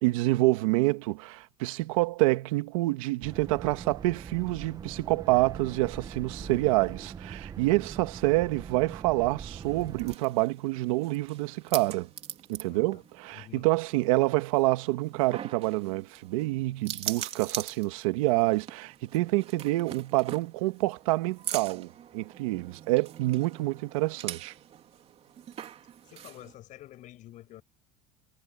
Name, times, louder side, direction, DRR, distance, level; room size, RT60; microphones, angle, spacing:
voice 1, 0.0-12.1 12.5-24.5, right 20 dB, 90° right, 1.9 m, -27 dB
sound 1, 3.2-10.2, right 6 dB, 20° right, 1.0 m, -42 dB
sound 2, 9.5-26.5, right 10 dB, 40° right, 3.5 m, -42 dB
voice 2, 12.7-13.0 13.3-13.7 26.0-27.6, left 14 dB, 50° left, 6.4 m, -48 dB
cardioid pair, 135°, 17 cm